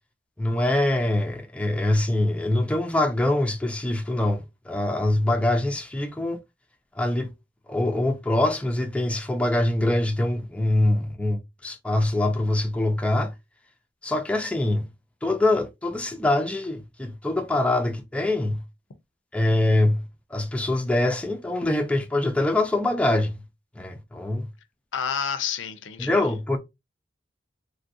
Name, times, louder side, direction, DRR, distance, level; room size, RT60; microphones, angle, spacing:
voice 1, 0.4-6.4 7.0-7.3 7.7-13.3 14.0-14.9 15.2-18.6 19.3-20.0 20.3-23.3 23.8-24.5 26.0-26.6, left 1 dB, 5° left, 0.4 m, -24 dB
voice 2, 24.9-26.2, left 7 dB, 90° left, 0.5 m, -29 dB
3.3 x 2.4 x 2.5 m
head